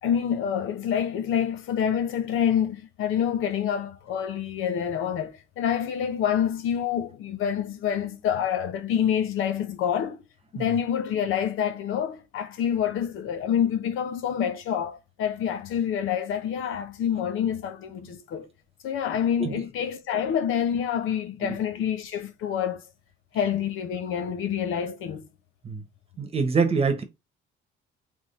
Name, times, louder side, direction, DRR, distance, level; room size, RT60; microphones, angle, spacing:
voice 1, 0.0-10.2 10.5-18.5 18.8-22.8 23.3-25.3, left 8 dB, 70° left, 0.8 m, -27 dB
voice 2, 26.2-27.0, right 5 dB, 30° right, 1.1 m, -25 dB
3.6 x 3.1 x 4.2 m
cardioid pair, 115°, 21 cm